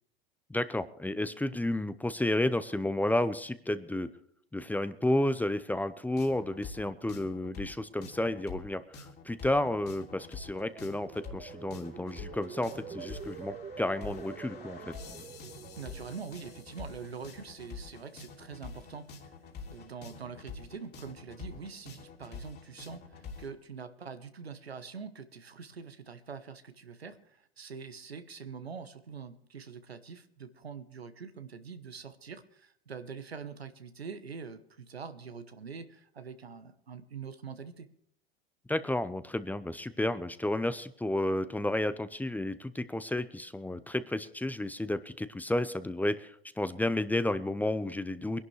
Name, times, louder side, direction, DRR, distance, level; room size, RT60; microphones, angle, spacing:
voice 1, 0.5-4.1 4.5-14.8 38.7-48.4, left 1 dB, 5° left, 13 dB, 0.7 m, -31 dB
sound 1, 6.2-23.5, left 5 dB, 35° left, 2.9 m, -47 dB
sound 2, 10.2-17.3 17.7-18.1, right 6 dB, 25° right, 1.6 m, -47 dB
voice 2, 15.8-19.3 19.7-37.9, right 5 dB, 90° right, 10 dB, 1.1 m, -44 dB
23.0 x 11.5 x 3.2 m, 0.67 s
figure-of-eight pair, 85°, 30 cm